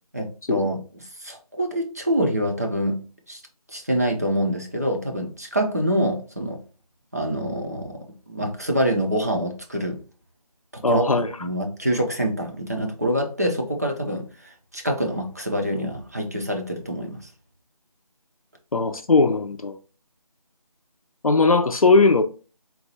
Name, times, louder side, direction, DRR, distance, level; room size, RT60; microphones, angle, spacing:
voice 1, 0.1-3.0 3.3-3.4 3.7-6.6 7.1-8.0 8.3-10.0 10.7-11.0 11.4-17.2, equal, 25° right, 0.5 m, -25 dB
voice 2, 10.8-11.3 18.7-19.8 21.2-22.2, left 3 dB, 65° left, 0.5 m, -18 dB
3.9 x 2.2 x 4.1 m
figure-of-eight pair, 165°, 20 cm